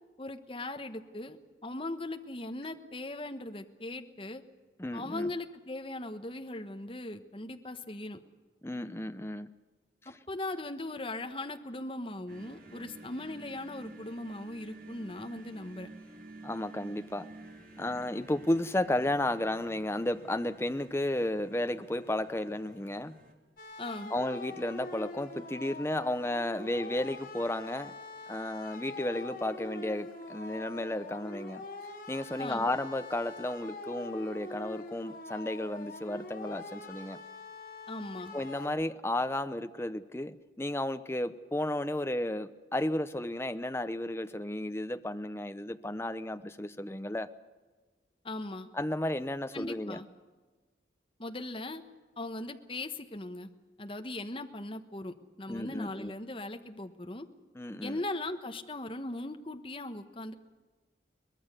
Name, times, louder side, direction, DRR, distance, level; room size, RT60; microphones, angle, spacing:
voice 1, 0.2-4.4 4.9-8.2 10.0-15.9 23.8-24.1 32.4-32.7 37.9-38.3 48.2-48.7 49.5-50.1 51.2-51.8 52.2-53.5 53.8-57.3 57.8-60.3, left 2 dB, 30° left, 6 dB, 1.2 m, -39 dB
voice 2, 4.8-5.3 8.6-9.5 16.4-17.3 17.8-23.2 24.1-27.9 28.3-31.6 32.1-37.2 38.3-47.3 48.7-50.0 55.5-56.1 57.5-58.0, left 1 dB, 15° left, 9 dB, 0.8 m, -33 dB
sound 1, 12.3-23.3, right 2 dB, 50° right, 3.2 m, -51 dB
sound 2, 23.6-38.7, left 2 dB, 50° left, 3.1 m, -44 dB
23.5 x 20.0 x 6.8 m, 1.4 s
head